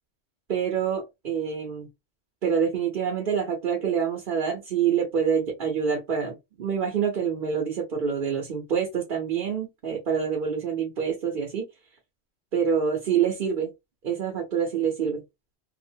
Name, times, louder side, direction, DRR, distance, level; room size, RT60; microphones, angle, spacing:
voice 1, 0.5-1.9 2.4-11.6 12.5-13.7 14.0-15.2, right 7 dB, 60° right, 0.9 m, -26 dB
2.8 x 2.4 x 2.7 m
omnidirectional pair, 1.1 m